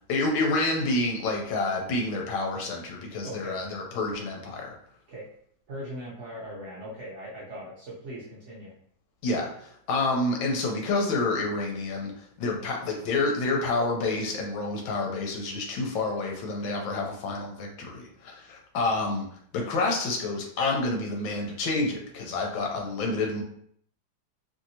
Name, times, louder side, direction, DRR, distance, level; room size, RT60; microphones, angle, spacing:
voice 1, 0.1-4.7 9.2-19.3 19.5-23.4, left 2 dB, 85° left, 0 dB, 1.4 m, -28 dB
voice 2, 3.2-3.6 5.1-5.3 5.7-8.7, equal, 65° right, -5 dB, 0.7 m, -39 dB
3.1 x 2.7 x 2.7 m, 0.67 s
omnidirectional pair, 2.1 m